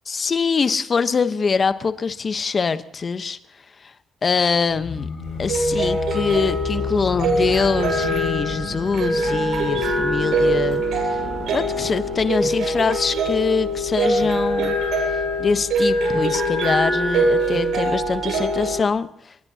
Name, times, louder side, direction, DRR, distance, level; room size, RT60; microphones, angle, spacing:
voice 1, 0.1-3.4 4.2-5.1 5.4-10.8 11.5-14.8 15.4-19.1, left 5 dB, 40° left, 11 dB, 1.0 m, -23 dB
sound 1, 4.7-12.4, left 5 dB, 55° left, 3.3 m, -33 dB
sound 2, 5.2-18.8, right 1 dB, 80° right, 8.0 m, -23 dB
24.0 x 20.5 x 2.9 m, 0.73 s
cardioid pair, 90°, 0 cm